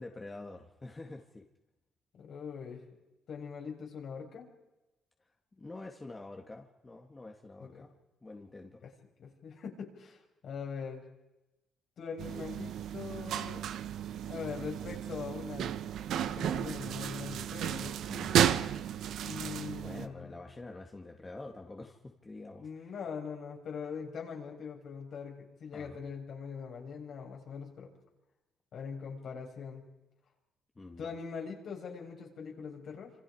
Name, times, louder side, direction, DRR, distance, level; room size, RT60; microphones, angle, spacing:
voice 1, 0.0-1.5 5.5-7.9 8.2-8.8 18.1-18.6 19.8-22.9 25.7-26.0 30.8-31.1, left 2 dB, 25° left, 2 dB, 2.4 m, -47 dB
voice 2, 2.1-2.8 3.3-4.5 7.7-7.8 8.8-8.9 9.2-11.0 12.0-13.7 14.3-15.8 16.1-17.9 19.2-20.3 22.6-27.9 28.7-29.8 31.0-33.1, left 6 dB, 65° left, 0 dB, 6.4 m, -42 dB
sound 1, 12.2-20.1, right 10 dB, 75° right, 1.1 m, -33 dB
27.5 x 26.5 x 5.1 m, 0.98 s
cardioid pair, 90°, 0 cm